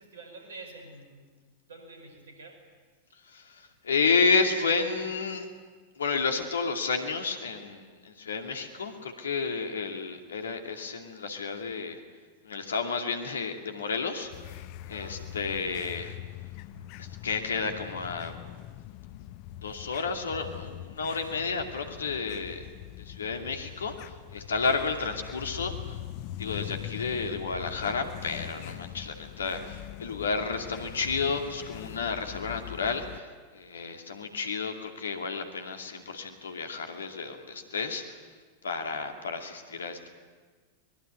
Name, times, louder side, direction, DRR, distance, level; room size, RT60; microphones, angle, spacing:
voice 1, 0.0-1.4 1.7-2.6 9.5-9.6 14.9-15.6, right 2 dB, 65° right, 5 dB, 5.6 m, -48 dB
voice 2, 3.3-5.5 6.0-12.0 12.4-14.3 14.9-16.2 17.0-18.3 19.6-22.7 23.0-26.0 26.4-33.3 33.5-38.2 38.6-40.1, left 4 dB, 70° left, 5 dB, 2.5 m, -31 dB
sound 1, 14.3-33.2, left 13 dB, 45° left, 0.9 m, -42 dB
24.5 x 21.0 x 9.4 m, 1.4 s
figure-of-eight pair, 90°, 0 cm